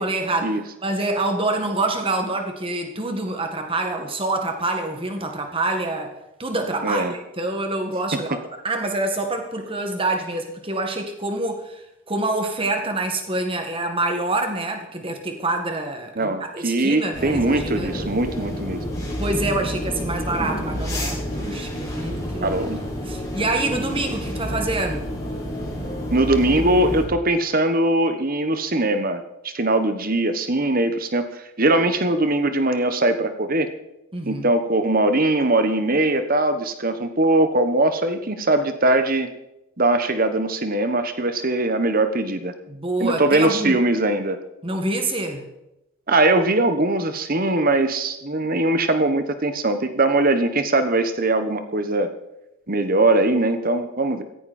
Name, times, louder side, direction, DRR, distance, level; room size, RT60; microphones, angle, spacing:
voice 1, 0.0-8.4 8.6-18.1 19.2-22.8 23.0-25.1 34.1-34.5 42.7-43.8 44.6-45.5, right 2 dB, 25° right, 4 dB, 1.9 m, -26 dB
voice 2, 6.8-7.1 16.2-18.8 22.4-22.8 26.1-33.7 34.2-39.3 39.8-42.5 43.0-44.4 46.1-52.1 52.7-54.2, right 2 dB, 40° right, 9 dB, 1.3 m, -21 dB
sound 1, 17.1-27.0, equal, 15° left, 5.7 m, -29 dB
16.5 x 15.5 x 4.4 m, 0.89 s
head